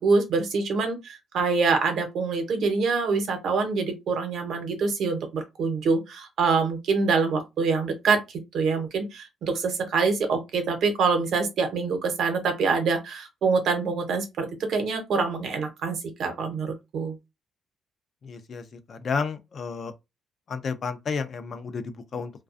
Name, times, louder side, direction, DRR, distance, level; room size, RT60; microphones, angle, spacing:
voice 1, 0.0-8.2 8.5-17.2, right 4 dB, 70° right, 0.8 m, -25 dB
voice 2, 18.2-19.9 20.5-22.3, left 5 dB, 50° left, 0.4 m, -31 dB
2.4 x 2.2 x 2.4 m
cardioid pair, 90°, 0 cm